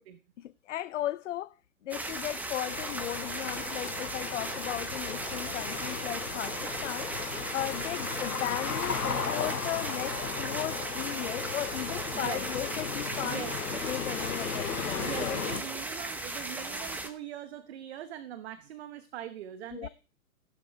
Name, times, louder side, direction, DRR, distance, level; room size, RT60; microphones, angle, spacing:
voice 1, 0.4-1.6 1.8-7.1 7.5-13.4 13.7-15.5 19.7-19.9, left 13 dB, 55° left, 0.6 m, -36 dB
sound 1, 1.9-17.1, right 2 dB, 5° right, 0.9 m, -37 dB
sound 2, 2.7-15.6, left 6 dB, 75° left, 2.0 m, -36 dB
voice 2, 13.2-13.6 15.0-19.9, right 11 dB, 45° right, 1.1 m, -41 dB
15.0 x 10.5 x 4.7 m
hypercardioid pair, 130°, 45 cm